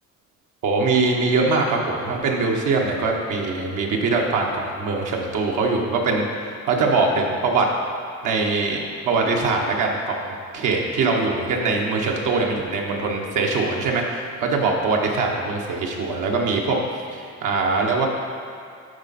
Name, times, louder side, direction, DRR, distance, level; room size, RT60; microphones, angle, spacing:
voice 1, 0.6-7.7 8.2-8.8 9.0-18.1, right 3 dB, 85° right, 0 dB, 1.2 m, -22 dB
11.5 x 4.1 x 4.2 m, 2.5 s
cardioid pair, 90°, 30 cm